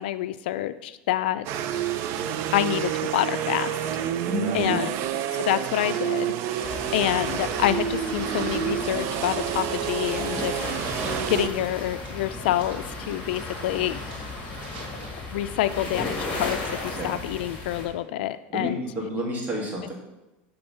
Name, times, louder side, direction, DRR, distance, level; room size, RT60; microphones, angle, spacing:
voice 1, 0.0-1.5 2.5-4.0 4.5-4.9 5.3-6.3 6.9-14.0 15.3-18.8, left 13 dB, 85° left, 13 dB, 0.3 m, -27 dB
sound 1, 1.4-11.5, right 10 dB, 55° right, 0.5 m, -29 dB
voice 2, 4.3-4.9 16.9-17.1 18.5-19.9, equal, 30° right, -2 dB, 2.2 m, -29 dB
sound 2, 5.7-17.2, right 3 dB, 85° right, 2.3 m, -50 dB
sound 3, 6.6-17.9, left 2 dB, 30° left, 2.1 m, -35 dB
7.0 x 3.9 x 5.4 m, 0.99 s
supercardioid pair, 125°, 5 cm